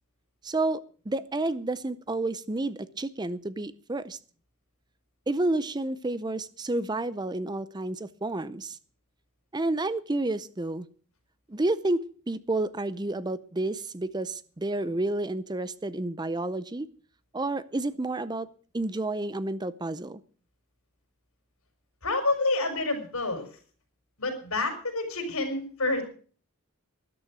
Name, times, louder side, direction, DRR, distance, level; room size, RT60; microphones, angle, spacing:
voice 1, 0.4-4.2 5.3-8.8 9.5-10.9 11.5-16.9 17.3-18.5 18.7-20.2, right 2 dB, 20° right, 16 dB, 0.6 m, -30 dB
voice 2, 22.0-23.5 24.2-26.0, left 2 dB, 80° left, 6 dB, 5.0 m, -28 dB
13.5 x 12.0 x 6.2 m, 0.42 s
head